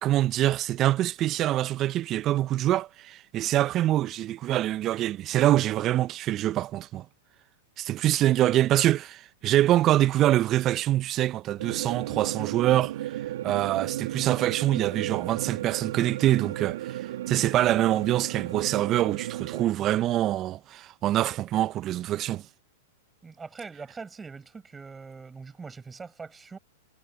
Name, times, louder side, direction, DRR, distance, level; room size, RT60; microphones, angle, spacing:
voice 1, 0.0-7.0 7.8-13.1 13.4-22.4, right 13 dB, 35° right, 0.8 m, -25 dB
sound 1, 11.6-19.7, right 13 dB, 65° right, 2.1 m, -34 dB
voice 2, 23.2-26.6, right 5 dB, 15° right, 6.3 m, -42 dB
hypercardioid pair, 105°, 0 cm